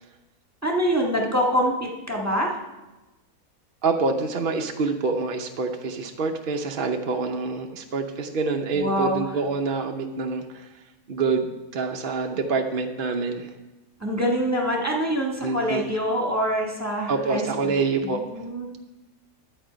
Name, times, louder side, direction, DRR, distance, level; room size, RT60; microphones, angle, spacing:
voice 1, 0.6-2.6 8.7-9.2 14.0-17.7 18.0-18.7, equal, 10° right, -1 dB, 1.4 m, -25 dB
voice 2, 3.8-13.5 15.4-15.8 17.1-18.4, right 4 dB, 50° right, 3 dB, 0.7 m, -26 dB
11.0 x 8.0 x 5.1 m, 1.1 s
omnidirectional pair, 1.5 m